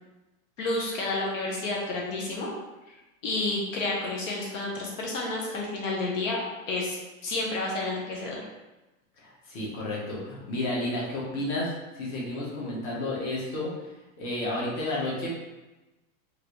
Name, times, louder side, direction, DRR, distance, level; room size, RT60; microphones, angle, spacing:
voice 1, 0.6-2.5 3.2-6.4 6.7-8.4, left 2 dB, 65° left, -2 dB, 0.9 m, -30 dB
voice 2, 9.2-13.7 14.2-15.3, left 1 dB, 35° left, -5 dB, 0.9 m, -31 dB
3.1 x 2.6 x 2.9 m, 1.1 s
supercardioid pair, 150°, 41 cm